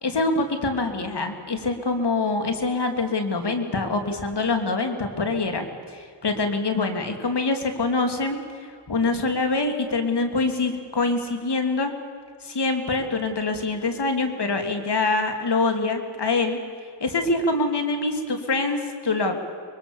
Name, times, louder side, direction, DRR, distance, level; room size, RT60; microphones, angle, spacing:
voice 1, 0.0-8.4 8.9-11.9 12.4-16.6 17.0-19.3, left 3 dB, 65° left, 5 dB, 3.0 m, -25 dB
25.5 x 22.5 x 7.2 m, 2.1 s
cardioid pair, 55°, 44 cm